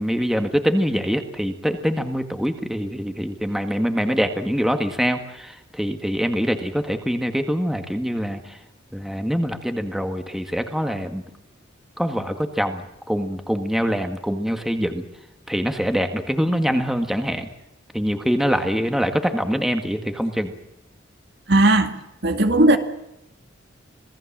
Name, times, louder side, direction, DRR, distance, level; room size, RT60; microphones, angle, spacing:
voice 1, 0.0-8.6 8.9-11.2 12.0-15.0 15.5-17.5 17.9-20.5, equal, ahead, 6 dB, 1.8 m, -24 dB
voice 2, 21.5-21.9 22.2-22.8, right 1 dB, 60° right, 7 dB, 2.3 m, -16 dB
27.0 x 18.5 x 7.4 m, 0.85 s
head